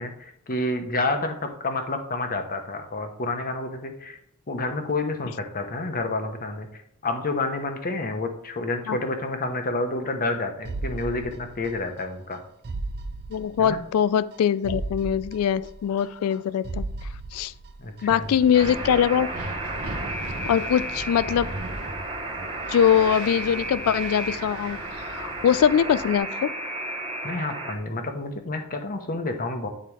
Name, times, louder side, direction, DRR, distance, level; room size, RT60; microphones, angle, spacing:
voice 1, 0.0-4.2 4.5-12.4 13.6-13.8 17.8-18.3 27.2-29.7, left 2 dB, 40° left, 6 dB, 1.0 m, -29 dB
sound 1, 10.6-12.0 12.3-12.4 12.6-14.0 14.3-14.4 14.6-16.4 16.6-18.0 18.3-18.4, right 2 dB, 45° right, 0.5 m, -35 dB
voice 2, 13.3-16.8 17.3-17.5 18.0-19.3 20.4-21.5 22.7-26.5, left 8 dB, 70° left, 16 dB, 0.3 m, -22 dB
Wind, 18.1-26.2, right 2 dB, 75° right, 1.3 m, -38 dB
Alarm, 18.5-27.7, right 2 dB, 25° right, 1.0 m, -33 dB
8.9 x 4.2 x 4.7 m, 0.71 s
head